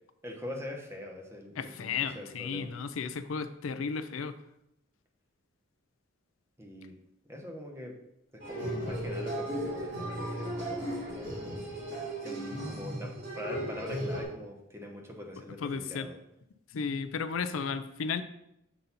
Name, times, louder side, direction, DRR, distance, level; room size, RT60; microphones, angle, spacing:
voice 1, 0.2-2.7 6.6-6.9 7.3-8.0 8.3-11.7 12.2-16.2, left 1 dB, 15° right, 1 dB, 0.9 m, -43 dB
voice 2, 1.6-4.3 15.6-16.1 16.7-18.2, left 5 dB, 85° left, 11 dB, 0.4 m, -34 dB
sound 1, 8.4-14.2, equal, 55° right, 2.6 m, -35 dB
7.2 x 3.9 x 4.0 m, 0.80 s
head